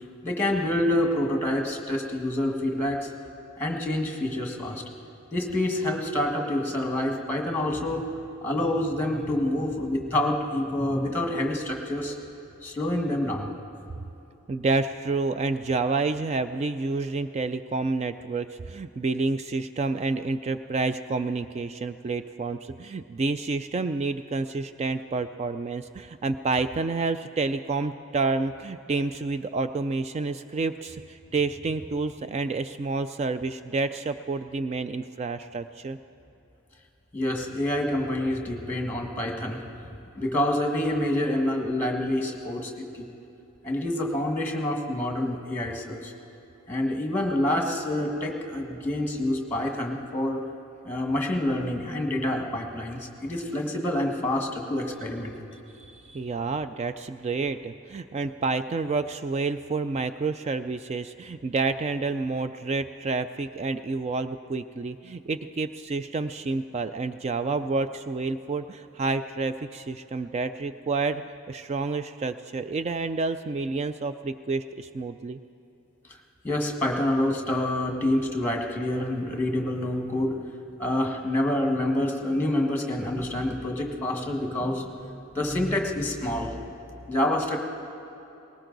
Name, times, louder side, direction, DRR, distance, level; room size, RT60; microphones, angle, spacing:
voice 1, 0.2-3.1 3.6-4.8 5.3-8.0 8.4-12.1 12.6-13.5 37.1-39.6 40.2-43.1 43.6-46.1 46.7-50.4 50.8-55.3 76.4-80.5 80.8-86.6 87.1-87.6, left 1 dB, 10° left, 2 dB, 1.5 m, -27 dB
voice 2, 14.5-36.0 55.8-71.2 71.5-75.4, right 3 dB, 30° right, 10 dB, 0.3 m, -29 dB
19.5 x 18.0 x 3.9 m, 2.9 s
head